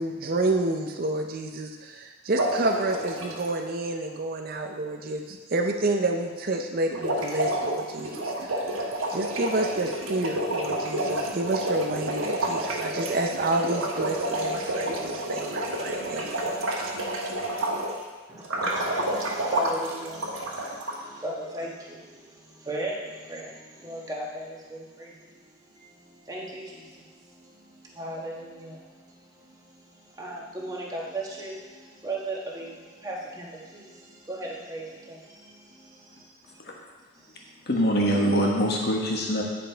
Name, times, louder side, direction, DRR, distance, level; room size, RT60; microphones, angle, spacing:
voice 1, 0.0-8.8 9.1-17.0, right 2 dB, 45° right, 3 dB, 0.5 m, -29 dB
sound 1, 2.4-3.5 6.9-18.0 18.4-20.9, right 1 dB, 75° right, 1.3 m, -29 dB
voice 2, 18.3-25.3 25.8-36.6 37.1-37.6, right 1 dB, 15° right, -4 dB, 1.2 m, -38 dB
voice 3, 37.7-39.4, equal, 50° left, -1 dB, 1.2 m, -23 dB
9.8 x 5.1 x 4.5 m, 1.4 s
head